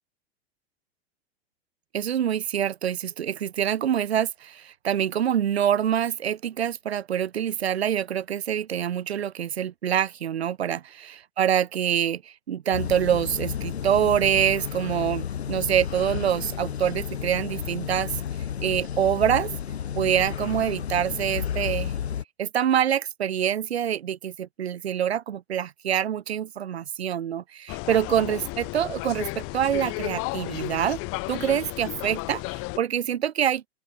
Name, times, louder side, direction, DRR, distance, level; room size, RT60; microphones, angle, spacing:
voice 1, 1.9-18.2 18.6-19.5 19.9-21.9 22.4-31.0 31.3-33.7, right 9 dB, 80° right, 4.7 m, -25 dB
sound 1, 12.7-22.2, left 8 dB, 85° left, 2.3 m, -32 dB
sound 2, 27.7-32.8, left 28 dB, 45° left, 1.2 m, -33 dB
open air
hypercardioid pair, 100°, 31 cm